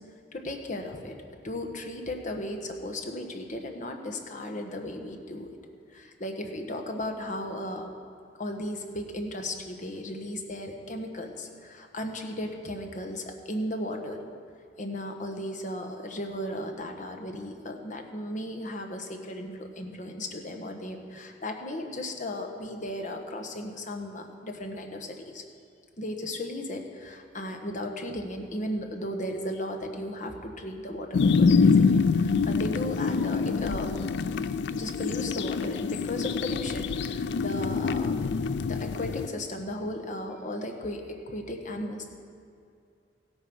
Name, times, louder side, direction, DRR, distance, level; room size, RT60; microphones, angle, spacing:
voice 1, 0.3-1.1 1.4-5.5 5.9-7.9 8.4-14.2 14.8-25.4 26.0-33.9 34.7-38.2 38.6-42.1, left 1 dB, 45° left, 3 dB, 1.3 m, -35 dB
sound 1, 31.1-39.3, left 5 dB, 65° left, 0.4 m, -25 dB
15.5 x 9.0 x 6.2 m, 2.5 s
head